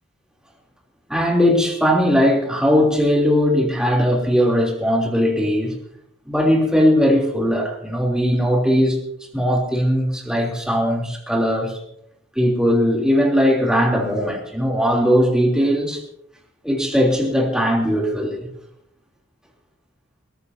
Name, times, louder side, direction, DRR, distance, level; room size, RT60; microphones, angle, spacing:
voice 1, 1.1-5.7 6.3-9.0 9.3-11.8 12.4-16.0 16.6-18.5, equal, 5° right, 3.4 m, -19 dB
22.5 x 18.0 x 2.9 m
head